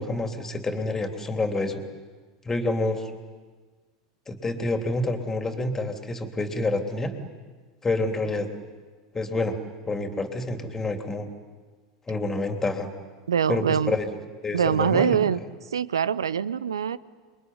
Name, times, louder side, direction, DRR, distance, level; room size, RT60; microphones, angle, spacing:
voice 1, 0.0-1.8 2.4-3.1 4.3-7.1 7.8-8.5 9.1-9.6 9.9-11.3 12.1-12.9 13.5-15.2, left 2 dB, 15° left, 5 dB, 3.2 m, -28 dB
voice 2, 13.3-14.0 14.5-15.4 15.7-17.0, right 7 dB, 80° right, 20 dB, 0.7 m, -23 dB
28.0 x 22.5 x 9.5 m, 1.4 s
figure-of-eight pair, 85°, 2 cm